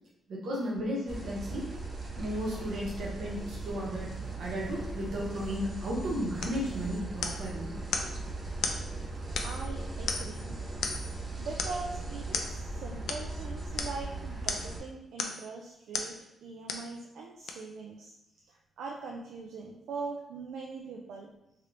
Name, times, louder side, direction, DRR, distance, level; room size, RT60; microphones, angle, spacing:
voice 1, 0.3-1.7 2.2-4.1 4.4-7.7, equal, 70° right, -3 dB, 1.0 m, -34 dB
sound 1, 1.1-14.8, right 2 dB, 25° right, 0.5 m, -38 dB
sound 2, 6.4-6.6 7.2-7.5 7.9-8.1 8.6-8.8 9.4-9.7 10.1-10.4 10.8-11.1 11.6-11.8 12.3-12.5 13.1-13.2 13.8-14.0 14.5-14.7 15.2-15.5 15.9-16.1 16.7-16.9 17.5-17.6, left 5 dB, 70° left, 0.3 m, -34 dB
voice 2, 7.1-7.6 9.4-10.6 11.1-18.1 18.8-21.3, right 4 dB, 85° right, 0 dB, 0.3 m, -42 dB
3.2 x 2.9 x 2.5 m, 0.86 s
wide cardioid pair, 165°, 0 cm